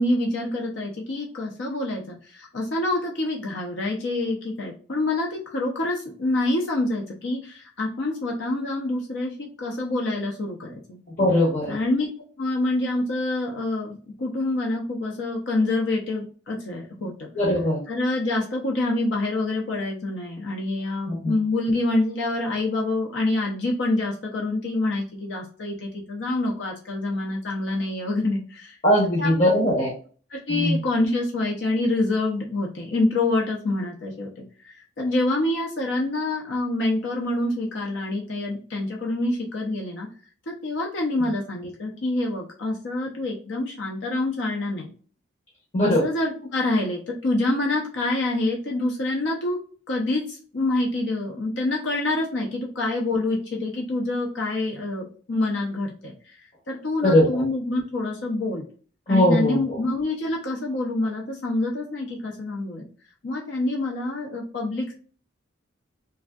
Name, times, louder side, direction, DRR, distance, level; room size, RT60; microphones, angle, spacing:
voice 1, 0.0-11.0 11.7-12.1 12.4-17.3 17.9-28.8 29.2-29.5 30.3-40.1 40.5-44.9 45.8-49.6 49.9-56.4 56.7-58.7 59.1-62.9 63.2-64.9, left 2 dB, 65° left, -1 dB, 0.5 m, -26 dB
voice 2, 11.2-11.8 17.4-17.8 21.1-21.3 28.8-29.9 30.5-30.8 45.7-46.0 57.0-57.4 59.1-59.8, left 1 dB, 35° left, -4 dB, 0.8 m, -20 dB
3.3 x 2.5 x 2.3 m, 0.42 s
head